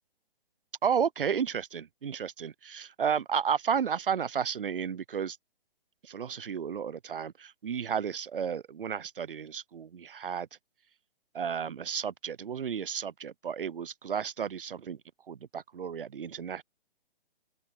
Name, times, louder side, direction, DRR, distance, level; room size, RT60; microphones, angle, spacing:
voice 1, 0.8-5.4 6.0-10.5 11.3-15.0 15.3-16.6, right 7 dB, 65° right, 0.8 m, -32 dB
open air
figure-of-eight pair, 135°, 30 cm